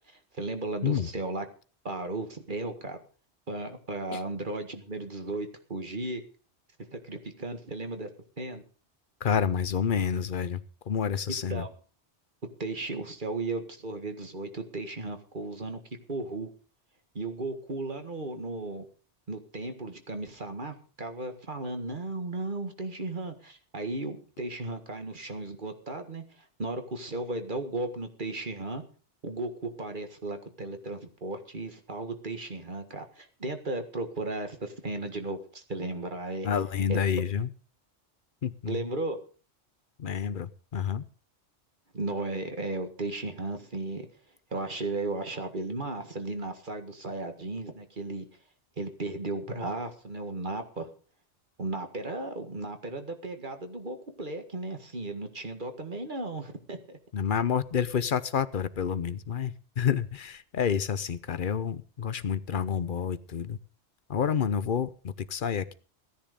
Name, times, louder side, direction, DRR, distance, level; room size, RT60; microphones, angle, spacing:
voice 1, 0.3-1.5 1.8-3.0 3.5-6.2 6.9-8.1 8.4-8.6 11.5-11.7 12.6-15.8 16.1-16.5 17.2-18.8 19.3-26.2 26.6-28.8 29.2-36.5 36.9-37.0 38.7-39.2 41.9-44.1 44.5-48.3 48.8-50.9 51.6-57.0, right 2 dB, 45° right, 7 dB, 1.9 m, -35 dB
voice 2, 9.2-10.6 10.9-11.6 36.4-37.5 38.4-38.8 40.0-41.1 57.1-63.6 64.1-65.7, left 7 dB, 50° left, 15 dB, 0.9 m, -29 dB
16.0 x 10.5 x 5.1 m, 0.38 s
omnidirectional pair, 1.2 m